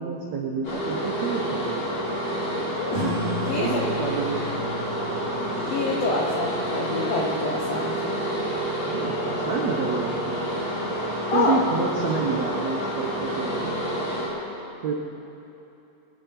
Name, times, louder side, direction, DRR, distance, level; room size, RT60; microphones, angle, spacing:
voice 1, 0.0-2.0 2.9-3.1 3.6-5.0 8.9-10.4 11.3-13.8 14.8-14.9, right 5 dB, 80° right, 1 dB, 1.5 m, -29 dB
sound 1, 0.6-14.3, right 1 dB, 35° left, 4.4 m, -28 dB
sound 2, 2.9-8.0, left 2 dB, 35° right, 4.9 m, -35 dB
voice 2, 3.3-3.8 5.4-8.1 11.3-11.6 12.0-12.2, left 3 dB, 70° left, -3 dB, 1.5 m, -27 dB
24.0 x 9.8 x 4.6 m, 2.9 s
omnidirectional pair, 4.5 m